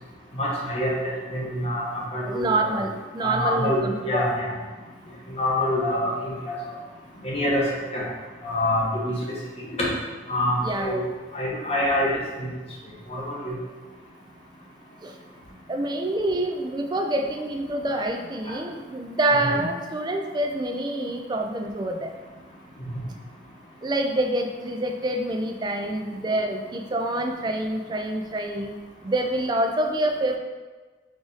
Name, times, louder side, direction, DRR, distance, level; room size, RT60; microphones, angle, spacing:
voice 1, 0.3-2.7 3.2-4.6 5.3-6.7 7.2-7.7 7.9-8.0 8.4-9.4 9.8-9.9 10.3-11.0 11.3-12.5 13.1-13.6 18.5-18.6 19.4-19.6 22.9-23.0, left 1 dB, 30° left, -5 dB, 1.0 m, -26 dB
voice 2, 2.3-4.3 10.6-11.1 15.0-15.2 15.7-22.1 23.8-30.4, right 1 dB, 20° right, 4 dB, 0.3 m, -27 dB
4.8 x 2.6 x 3.9 m, 1.3 s
head